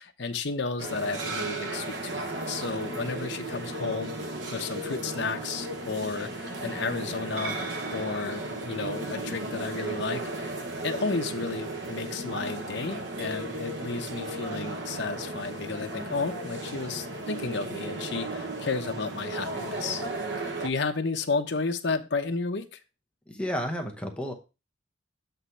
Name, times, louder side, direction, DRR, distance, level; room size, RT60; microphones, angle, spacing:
voice 1, 0.0-7.6 7.9-10.6 10.8-20.0 20.6-22.8, left 4 dB, 65° left, 7 dB, 0.8 m, -32 dB
sound 1, 0.8-20.7, right 2 dB, 65° right, 1.1 m, -35 dB
voice 2, 23.3-24.3, equal, 5° left, 3 dB, 0.8 m, -31 dB
8.0 x 3.1 x 5.5 m, 0.29 s
head